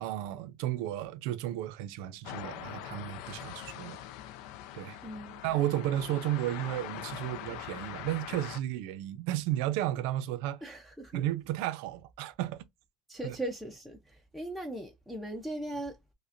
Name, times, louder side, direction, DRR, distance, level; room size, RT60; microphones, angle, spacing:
voice 1, 0.0-4.0 4.7-5.0 5.4-10.6 11.1-12.6 13.2-13.4, right 13 dB, 85° right, 0.5 m, -33 dB
sound 1, 2.2-8.6, left 12 dB, 80° left, 0.4 m, -43 dB
voice 2, 5.0-5.4 10.6-11.2 13.1-16.1, right 1 dB, ahead, 0.5 m, -39 dB
5.0 x 2.1 x 2.5 m
cardioid pair, 155°, 0 cm